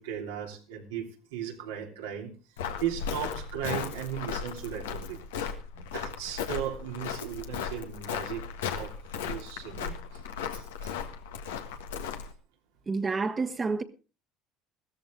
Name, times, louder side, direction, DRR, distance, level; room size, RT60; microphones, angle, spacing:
voice 1, 0.0-5.2 5.7-8.5 8.7-8.9 9.2-10.2 10.5-11.0, right 9 dB, 85° right, 3.2 m, -37 dB
Walk footsteps, 2.6-12.3, left 7 dB, 90° left, 1.6 m, -36 dB
voice 2, 12.8-13.8, right 4 dB, 30° right, 1.4 m, -29 dB
15.5 x 14.0 x 3.8 m
hypercardioid pair, 75°, 0 cm